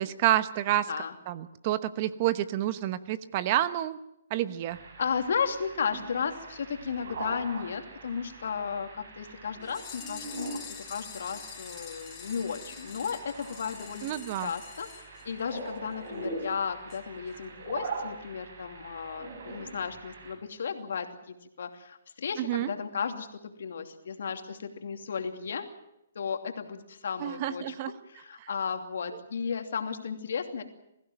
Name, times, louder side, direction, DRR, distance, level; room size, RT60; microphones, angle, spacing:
voice 1, 0.0-0.9 1.3-4.0 4.3-4.8 14.0-14.5 22.4-22.7 27.2-27.9 28.4-28.5, right 13 dB, 35° right, 14 dB, 1.0 m, -29 dB
sound 1, 4.7-20.3, right 3 dB, 60° right, 6.7 m, -43 dB
voice 2, 5.0-14.1 14.4-25.7 26.1-27.7 28.1-30.6, left 6 dB, 70° left, 6 dB, 2.7 m, -34 dB
sound 2, 9.6-15.8 16.1-16.2 16.4-16.5 16.9-17.0 17.3-17.4, left 10 dB, 25° left, 3.5 m, -46 dB
22.5 x 15.5 x 9.1 m, 0.84 s
hypercardioid pair, 150°, 0 cm